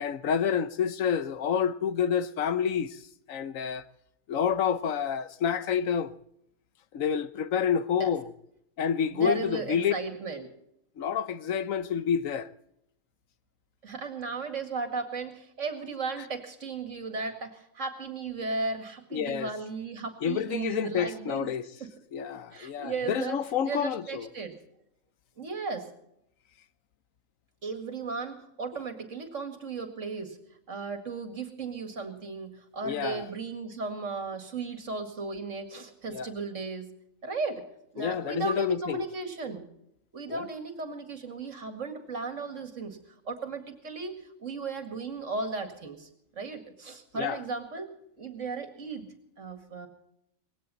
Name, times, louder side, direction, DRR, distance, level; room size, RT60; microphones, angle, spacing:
voice 1, 0.0-3.0 3.3-3.8 4.3-6.2 6.9-8.3 8.8-9.9 11.0-12.5 19.1-19.5 20.2-21.6 22.1-24.3 32.8-33.3 36.1-36.3 38.0-39.0 40.3-40.5 47.1-47.4, left 8 dB, 80° left, 1.2 m, -28 dB
voice 2, 9.1-10.5 13.8-21.5 21.8-21.9 22.5-24.5 25.4-25.9 27.6-30.4 30.7-36.9 37.2-37.6 37.9-39.6 40.1-43.0 43.3-46.1 46.4-47.9 48.2-49.9, right 4 dB, 70° right, 2.5 m, -35 dB
19.5 x 17.0 x 4.1 m
omnidirectional pair, 1.4 m